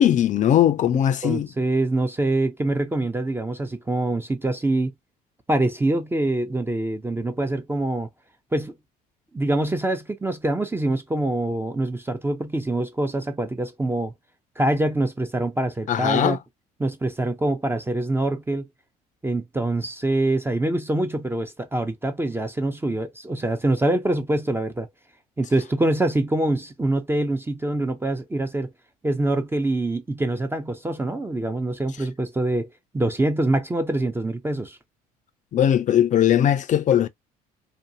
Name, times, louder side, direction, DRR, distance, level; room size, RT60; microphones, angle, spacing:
voice 1, 0.0-1.5 15.9-16.4 35.5-37.1, left 10 dB, 40° left, 0.4 m, -19 dB
voice 2, 1.2-4.9 5.5-8.1 8.5-8.7 9.3-14.1 14.6-16.4 16.8-18.7 19.2-24.9 25.4-28.7 29.0-32.7 32.9-34.8, right 2 dB, 10° right, 0.6 m, -24 dB
2.6 x 2.3 x 2.6 m
hypercardioid pair, 60°, 20 cm